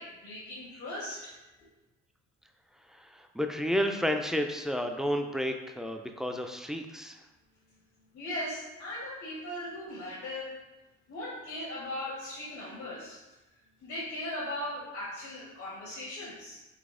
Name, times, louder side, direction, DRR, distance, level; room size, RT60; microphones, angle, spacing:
voice 1, 0.0-1.3 8.1-10.6 11.1-13.2 13.8-16.6, left 1 dB, 75° left, -7 dB, 1.3 m, -38 dB
voice 2, 3.0-7.2, equal, ahead, 4 dB, 0.3 m, -31 dB
4.0 x 2.8 x 3.7 m, 1.1 s
cardioid pair, 90°, 30 cm